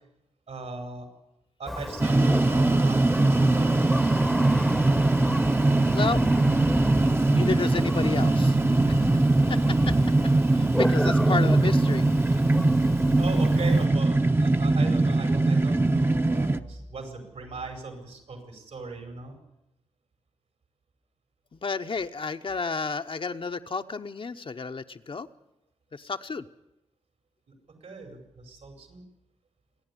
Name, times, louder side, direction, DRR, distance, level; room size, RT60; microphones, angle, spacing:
voice 1, 0.5-1.1 1.6-4.6 11.3-11.4 13.2-19.4 27.8-29.0, right 3 dB, 80° right, 5 dB, 5.2 m, -38 dB
Thunder, 1.7-13.9, equal, ahead, 0.9 m, -33 dB
sound 1, 2.0-16.6, right 2 dB, 20° right, 0.8 m, -22 dB
voice 2, 5.9-6.2 7.2-8.6 8.9-9.1 9.5-10.0 10.5-12.1 12.4-12.5 12.8-13.1 21.5-25.3 25.9-26.4, left 4 dB, 50° left, 8 dB, 0.9 m, -31 dB
26.5 x 10.0 x 9.8 m, 0.88 s
cardioid pair, 60°, 11 cm